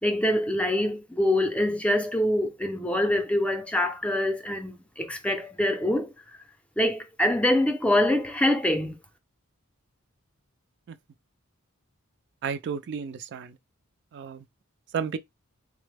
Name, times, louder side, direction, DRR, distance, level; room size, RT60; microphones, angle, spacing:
voice 1, 0.0-6.4 6.8-9.0, left 1 dB, 5° left, 0.5 m, -25 dB
voice 2, 12.4-13.5 14.1-14.4 14.9-15.2, right 6 dB, 55° right, 0.3 m, -32 dB
3.7 x 2.0 x 3.3 m
head